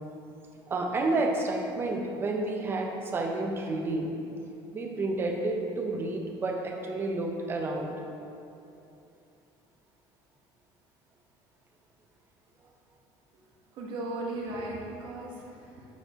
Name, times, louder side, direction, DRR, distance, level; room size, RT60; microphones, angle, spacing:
voice 1, 0.7-4.1 4.7-7.9, right 2 dB, 25° right, 1 dB, 0.6 m, -30 dB
voice 2, 13.8-15.8, right 2 dB, 60° right, -2 dB, 1.1 m, -36 dB
7.9 x 4.6 x 2.9 m, 2.7 s
cardioid pair, 150°, 9 cm